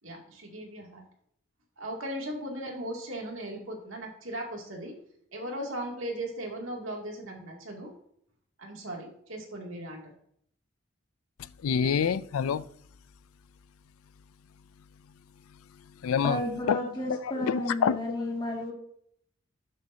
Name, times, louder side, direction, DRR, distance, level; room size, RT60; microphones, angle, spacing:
voice 1, 0.0-1.0 1.8-4.9 5.3-7.9 8.6-10.1, right 1 dB, 70° right, 2.6 m, -38 dB
voice 2, 11.4-12.6 16.0-16.4 16.7-16.8 17.1-18.0, left 7 dB, 85° left, 0.4 m, -27 dB
voice 3, 16.2-18.7, left 1 dB, 20° left, 2.2 m, -32 dB
12.5 x 7.4 x 2.8 m
head